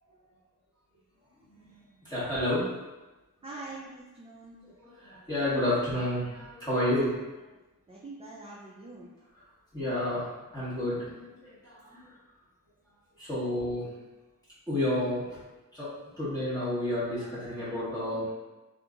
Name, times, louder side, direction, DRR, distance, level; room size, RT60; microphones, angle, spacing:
voice 1, 2.0-2.6 4.8-7.1 9.7-10.2 10.5-12.1 13.2-13.9 14.7-15.2 15.7-18.3, left 1 dB, 10° left, -11 dB, 1.4 m, -30 dB
voice 2, 3.4-4.6 7.9-9.1 13.6-13.8, right 2 dB, 20° right, -5 dB, 0.4 m, -44 dB
2.8 x 2.6 x 2.4 m, 1.1 s
wide cardioid pair, 90°, 35 cm